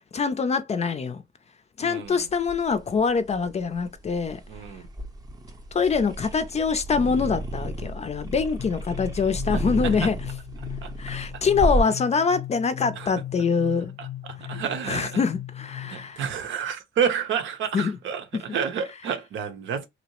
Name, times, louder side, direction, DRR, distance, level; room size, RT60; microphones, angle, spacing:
voice 1, 0.1-1.2 1.8-4.4 5.7-10.2 11.0-13.9 14.9-16.2 17.7-18.0, left 5 dB, 35° left, 0.5 m, -24 dB
voice 2, 1.8-2.3 4.5-4.8 9.5-10.1 10.8-11.4 12.9-13.1 14.0-15.2 15.8-19.9, right 7 dB, 75° right, 0.7 m, -30 dB
sound 1, 2.1-11.8, right 1 dB, 20° right, 0.6 m, -32 dB
sound 2, 8.6-16.1, left 13 dB, 90° left, 0.7 m, -38 dB
2.7 x 2.0 x 2.9 m
cardioid pair, 90°, 20 cm